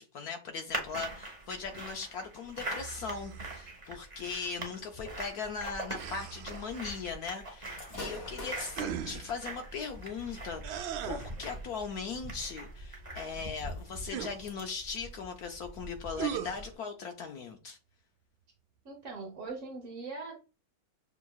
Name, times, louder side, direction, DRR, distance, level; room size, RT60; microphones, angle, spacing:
voice 1, 0.0-17.8, left 5 dB, 75° left, 0.8 m, -39 dB
sound 1, 0.7-16.7, right 2 dB, 35° right, 0.5 m, -43 dB
sound 2, 2.8-3.7 5.9-6.9 8.7-9.4 10.6-11.4 14.1-14.4 16.2-16.7, right 9 dB, 80° right, 1.4 m, -38 dB
Gunshot gunfire / Fireworks, 7.6-14.6, left 2 dB, 35° left, 1.3 m, -50 dB
voice 2, 18.8-20.6, right 3 dB, 50° right, 1.0 m, -41 dB
7.0 x 2.9 x 2.3 m
omnidirectional pair, 2.2 m